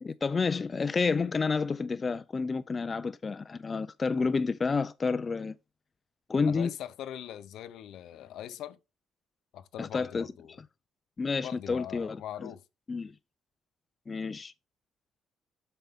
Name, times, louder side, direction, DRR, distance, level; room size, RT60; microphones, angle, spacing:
voice 1, 0.0-5.6 6.3-6.7 9.8-10.3 11.2-12.2 12.4-12.5 12.9-13.1 14.1-14.5, left 4 dB, 25° left, 0.3 m, -29 dB
voice 2, 6.5-8.8 9.5-10.6 11.4-12.6, left 11 dB, 70° left, 0.6 m, -41 dB
8.0 x 5.4 x 3.5 m
cardioid pair, 145°, 0 cm